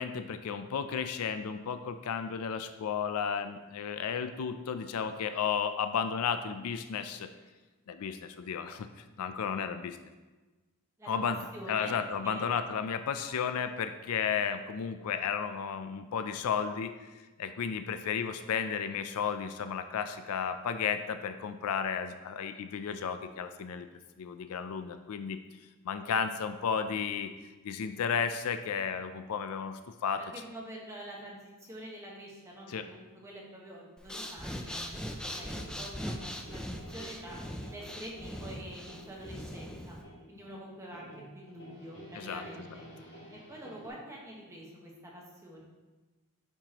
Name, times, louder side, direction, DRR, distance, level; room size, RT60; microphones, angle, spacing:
voice 1, 0.0-7.3 7.9-8.9 9.2-10.0 11.1-11.4 11.7-23.9 24.2-25.4 25.8-27.3 27.6-30.2 32.7-32.9 42.1-42.4, left 7 dB, 75° left, 9 dB, 0.4 m, -33 dB
voice 2, 11.0-12.5 30.2-36.6 36.9-37.4 37.7-40.0 40.3-42.8 43.3-45.6, right 1 dB, 15° right, -3 dB, 1.2 m, -46 dB
Breathing, 34.0-40.0, equal, 5° left, 0.3 m, -40 dB
sound 1, 35.0-43.9, right 1 dB, 55° left, 1.6 m, -51 dB
8.8 x 4.6 x 2.9 m, 1.2 s
head